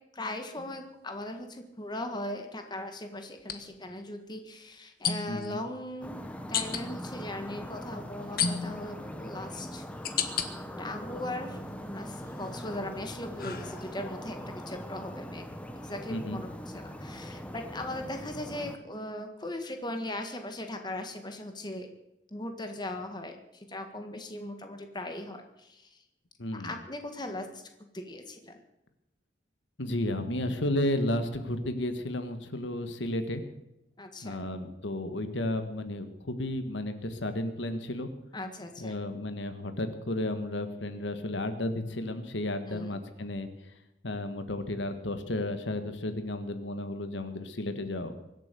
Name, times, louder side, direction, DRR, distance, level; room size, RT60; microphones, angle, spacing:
voice 1, 0.1-9.8 10.8-15.4 15.8-16.5 16.7-21.9 22.3-26.0 26.5-28.6 34.0-34.4 38.3-39.0 42.7-43.0, left 1 dB, 25° left, 5 dB, 1.7 m, -39 dB
sound 1, 0.6-0.8 3.4-3.6 5.0-5.5 6.5-6.8 8.4-8.9 9.5-10.5 11.0-11.7 12.2-14.2, left 7 dB, 50° left, 1.4 m, -33 dB
voice 2, 5.3-5.6 16.1-16.4 26.4-26.7 29.8-33.4 34.2-38.1 38.8-43.5 44.0-48.1, left 1 dB, 75° left, 8 dB, 1.6 m, -33 dB
sound 2, 6.0-18.8, equal, 5° left, 1.0 m, -41 dB
23.5 x 8.3 x 6.9 m, 0.90 s
head